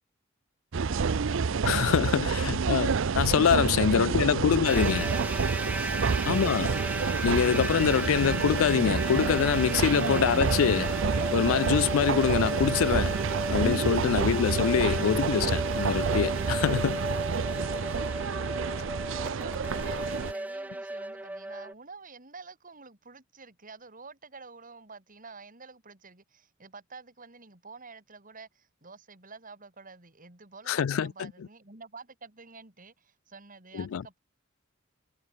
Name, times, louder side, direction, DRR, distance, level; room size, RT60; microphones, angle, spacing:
sound 1, 0.7-20.3, right 5 dB, 70° right, 0.6 m, -29 dB
voice 1, 0.9-1.5 3.8-5.7 6.1-6.8 19.2-34.2, right 4 dB, 40° right, 4.5 m, -48 dB
voice 2, 1.7-5.1 6.3-6.7 7.2-10.9 11.3-13.2 13.5-17.0 30.7-31.3 33.7-34.0, left 8 dB, 90° left, 0.4 m, -25 dB
sound 2, 4.6-21.7, right 1 dB, 10° right, 0.5 m, -35 dB
head